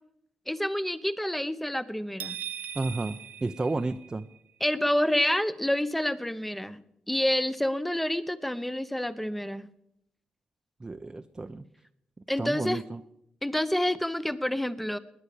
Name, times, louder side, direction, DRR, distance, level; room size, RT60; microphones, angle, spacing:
voice 1, 0.5-2.4 4.6-6.8 7.1-9.7 12.3-12.8 13.4-15.0, left 1 dB, 5° left, 15 dB, 0.8 m, -28 dB
sound 1, 2.2-4.4, right 9 dB, 75° right, 0.7 m, -39 dB
voice 2, 2.7-4.3 10.8-11.6 12.4-13.0, right 2 dB, 20° right, 7 dB, 0.6 m, -32 dB
20.0 x 9.7 x 6.8 m, 0.80 s
cardioid pair, 100°, 3 cm